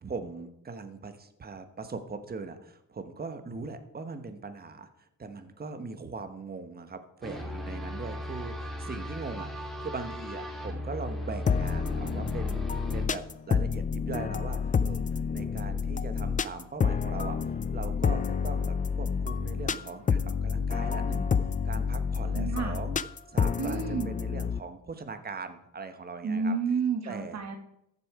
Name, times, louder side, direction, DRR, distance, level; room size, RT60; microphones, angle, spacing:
voice 1, 0.0-12.6 12.9-21.3 21.6-23.0 23.3-26.5 27.0-27.4, right 4 dB, 30° right, 9 dB, 1.2 m, -40 dB
sound 1, 7.2-13.1, equal, ahead, 2.0 m, -37 dB
sound 2, 11.5-24.6, left 6 dB, 25° left, 0.4 m, -29 dB
voice 2, 22.3-22.8 23.6-24.1 26.2-27.6, right 5 dB, 55° right, 5 dB, 1.6 m, -30 dB
14.0 x 6.9 x 4.9 m, 0.79 s
cardioid pair, 120°, 32 cm